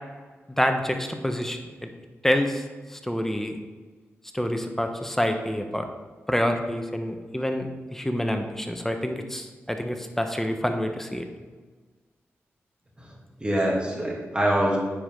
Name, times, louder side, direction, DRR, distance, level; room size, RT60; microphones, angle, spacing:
voice 1, 0.6-1.9 2.2-3.6 4.3-5.9 6.3-11.2, equal, 5° left, 5 dB, 1.1 m, -27 dB
voice 2, 13.0-14.8, right 1 dB, 20° right, -3 dB, 2.6 m, -25 dB
9.8 x 5.0 x 3.9 m, 1.4 s
cardioid pair, 50°, 5 cm